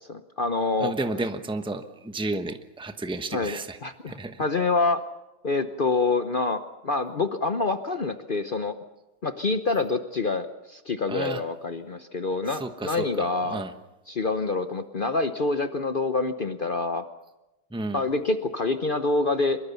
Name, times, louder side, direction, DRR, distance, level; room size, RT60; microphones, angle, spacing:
voice 1, 0.0-0.9 3.3-4.1 4.4-5.0 5.4-8.7 9.2-13.6 14.1-17.0 17.9-19.6, left 3 dB, 90° left, 9 dB, 0.4 m, -26 dB
voice 2, 0.8-3.8 4.0-4.4 11.1-11.4 12.5-13.7 17.7-18.1, right 2 dB, 5° right, 8 dB, 0.4 m, -32 dB
24.5 x 22.0 x 7.0 m, 0.99 s
omnidirectional pair, 2.3 m